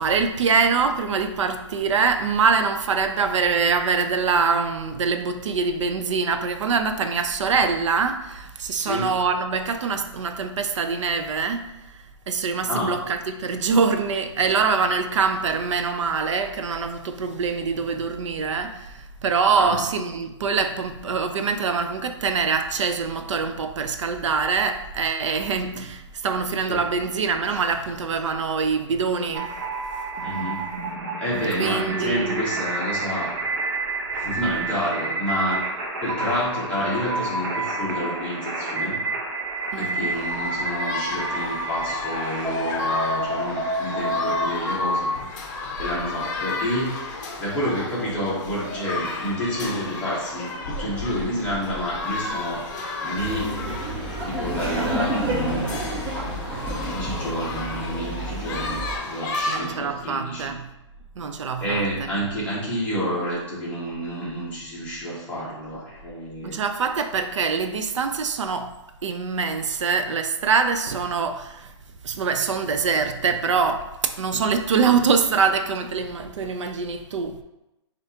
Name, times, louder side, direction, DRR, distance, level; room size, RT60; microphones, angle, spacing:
voice 1, 0.0-11.7 12.3-29.5 31.6-32.5 39.7-40.1 59.5-60.6 61.2-61.8 66.4-68.7 69.0-71.7 72.0-77.4, right 5 dB, 80° right, 8 dB, 0.5 m, -24 dB
voice 2, 8.8-9.1 12.7-12.9 19.5-19.8 25.6-25.9 26.7-26.8 30.2-30.6 31.2-33.5 34.1-35.6 36.0-39.0 39.7-45.1 45.8-52.7 53.0-53.5 54.3-56.0 56.6-60.5 61.6-66.6, equal, 10° left, -8 dB, 0.9 m, -29 dB
sound 1, 29.3-45.2, right 2 dB, 40° right, 0.9 m, -29 dB
sound 2, 40.1-59.7, left 3 dB, 40° left, 0.7 m, -33 dB
Laughter, 53.2-59.0, right 1 dB, 10° right, 0.5 m, -29 dB
6.8 x 2.5 x 2.8 m, 0.94 s
hypercardioid pair, 170°, 15 cm